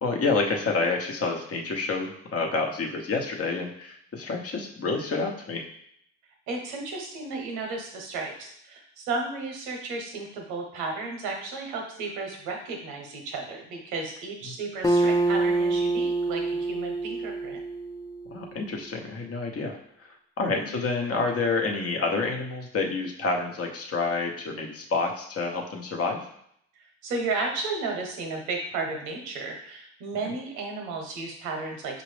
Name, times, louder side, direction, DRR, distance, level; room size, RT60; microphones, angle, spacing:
voice 1, 0.0-5.7 14.5-14.6 18.3-26.2, left 3 dB, 50° left, 2 dB, 1.0 m, -28 dB
voice 2, 6.5-17.6 20.4-20.8 27.0-32.0, right 3 dB, 85° right, 2 dB, 0.9 m, -33 dB
Acoustic guitar, 14.8-18.4, right 2 dB, 10° left, 0.4 m, -26 dB
5.1 x 2.6 x 3.3 m, 0.70 s
supercardioid pair, 55°, 30 cm